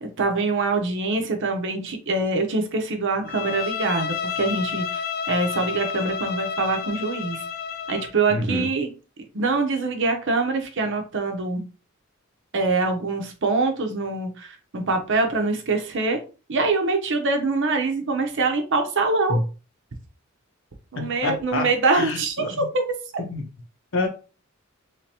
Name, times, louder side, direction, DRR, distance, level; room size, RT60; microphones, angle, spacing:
voice 1, 0.0-5.0 5.3-7.4 7.9-8.9 9.3-11.6 12.5-14.5 14.7-16.2 16.5-19.4 20.9-22.8, right 3 dB, 60° right, 5 dB, 0.8 m, -24 dB
Bowed string instrument, 3.3-8.2, left 7 dB, 45° left, 0.4 m, -30 dB
voice 2, 8.3-8.7 19.3-19.4 20.9-22.7 23.2-23.4 23.9-24.1, left 2 dB, 65° left, 4 dB, 1.0 m, -27 dB
3.4 x 3.3 x 2.8 m, 0.34 s
head